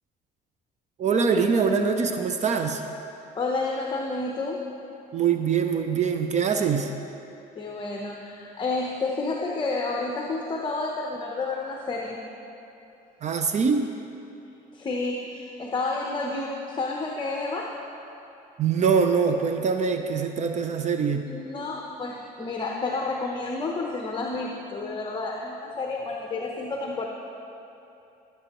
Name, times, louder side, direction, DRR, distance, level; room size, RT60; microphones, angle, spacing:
voice 1, 1.0-2.8 5.1-6.9 13.2-13.9 18.6-21.3, right 6 dB, 45° right, 6 dB, 0.6 m, -23 dB
voice 2, 3.3-4.7 7.5-12.2 14.7-17.8 21.3-27.1, left 3 dB, 25° left, 0 dB, 0.9 m, -30 dB
16.0 x 8.1 x 3.0 m, 2.9 s
cardioid pair, 110°, 17 cm